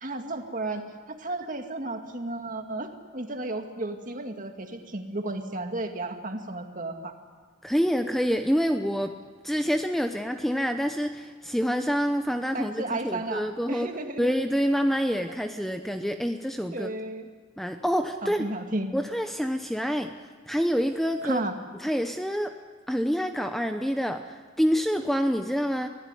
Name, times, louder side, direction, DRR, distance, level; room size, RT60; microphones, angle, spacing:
voice 1, 0.0-7.1 12.5-14.3 16.7-17.3 18.2-19.0 21.2-21.5, right 2 dB, 40° right, 5 dB, 2.1 m, -33 dB
voice 2, 7.6-9.2 9.4-13.9 14.2-16.9 17.6-18.4 18.9-20.1 20.5-21.4 21.8-22.5 22.9-25.9, equal, ahead, 6 dB, 0.7 m, -27 dB
24.5 x 16.5 x 9.9 m, 1.5 s
head